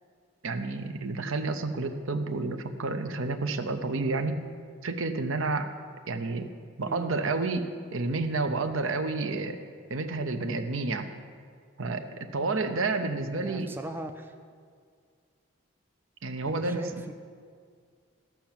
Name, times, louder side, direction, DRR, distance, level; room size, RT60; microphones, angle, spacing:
voice 1, 0.4-4.4 4.8-5.7 6.1-6.5 6.8-9.6 9.9-11.1 11.8-13.7 16.2-16.8, right 3 dB, 70° right, 8 dB, 0.8 m, -30 dB
voice 2, 13.3-14.3 16.5-17.1, right 1 dB, 10° right, 6 dB, 0.4 m, -39 dB
13.5 x 5.9 x 7.4 m, 2.1 s
head